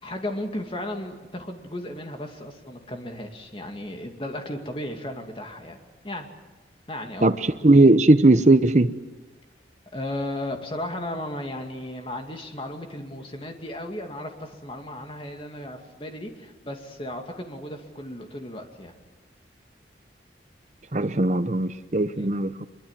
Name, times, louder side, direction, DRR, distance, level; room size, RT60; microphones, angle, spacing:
voice 1, 0.0-5.8 6.0-6.3 6.9-7.3 9.9-18.9 22.1-22.3, left 1 dB, 30° left, 4 dB, 2.4 m, -35 dB
voice 2, 7.6-8.9 20.9-22.7, right 2 dB, 40° right, 9 dB, 0.8 m, -18 dB
23.5 x 22.5 x 7.5 m, 1.2 s
head